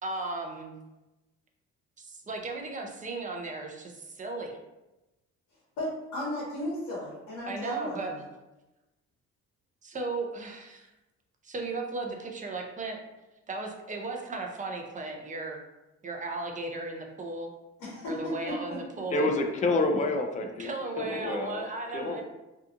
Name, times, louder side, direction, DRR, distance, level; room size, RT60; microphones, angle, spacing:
voice 1, 0.0-0.8 2.0-4.6 7.5-8.1 9.8-10.9 11.4-13.0 13.5-15.6 16.0-17.5 18.0-19.3 20.6-22.2, right 3 dB, 25° right, 1 dB, 0.5 m, -36 dB
voice 2, 5.8-8.2 17.8-19.0, left 1 dB, 85° left, -7 dB, 1.0 m, -35 dB
voice 3, 19.1-20.7 21.0-21.7 21.9-22.2, left 2 dB, 25° left, 4 dB, 0.4 m, -28 dB
2.7 x 2.4 x 2.5 m, 1.0 s
cardioid pair, 90°, 30 cm